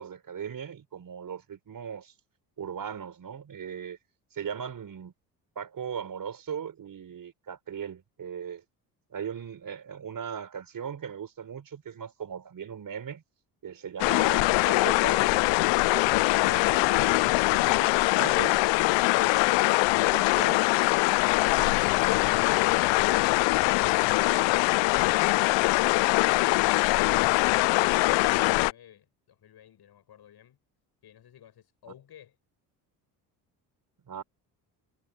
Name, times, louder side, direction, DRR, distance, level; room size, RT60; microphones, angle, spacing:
voice 1, 0.0-2.1 2.6-4.0 4.3-5.1 5.6-8.6 9.1-13.2 13.6-19.4 19.8-20.6 21.6-21.9 34.1-34.2, right 7 dB, 45° right, 4.4 m, -39 dB
sound 1, 14.0-28.7, left 24 dB, 70° left, 0.7 m, -23 dB
voice 2, 27.8-30.6 31.0-32.4, left 10 dB, 55° left, 7.7 m, -53 dB
supercardioid pair, 65°, 45 cm